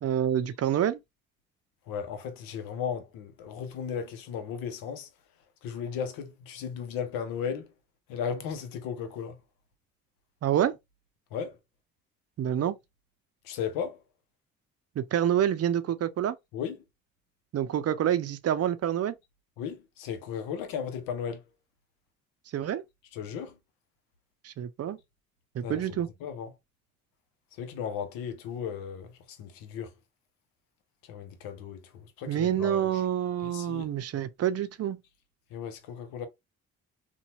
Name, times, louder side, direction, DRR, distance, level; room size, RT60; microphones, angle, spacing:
voice 1, 0.0-1.0 10.4-10.8 12.4-12.8 15.0-16.4 17.5-19.1 22.5-22.8 24.4-25.0 25.5-26.1 32.3-35.0, right 10 dB, 45° right, 0.5 m, -27 dB
voice 2, 1.9-5.1 5.6-7.7 8.1-9.4 11.3-11.6 13.4-14.0 16.5-16.8 19.6-21.4 23.1-23.6 25.6-25.8 26.2-26.5 27.6-29.9 31.1-32.9 33.4-33.9 35.5-36.3, left 7 dB, 85° left, 0.6 m, -35 dB
2.8 x 2.2 x 2.7 m
supercardioid pair, 50°, 33 cm